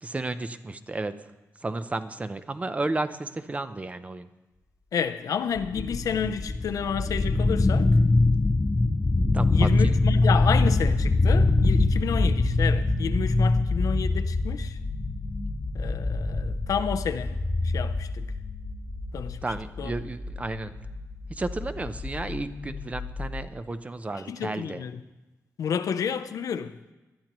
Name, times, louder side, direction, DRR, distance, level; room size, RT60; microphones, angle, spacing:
voice 1, 0.0-1.3 1.6-4.3 9.3-10.0 13.4-13.6 19.4-20.8 21.3-24.9, right 2 dB, 25° right, 0.6 m, -33 dB
voice 2, 4.9-7.9 9.5-14.8 15.7-17.4 17.6-18.3 19.1-19.4 19.8-19.9 24.3-25.0 25.6-26.8, left 7 dB, 80° left, 0.6 m, -30 dB
sound 1, 5.6-23.4, left 2 dB, 25° left, 0.6 m, -24 dB
19.0 x 11.5 x 3.0 m
wide cardioid pair, 115°, 6 cm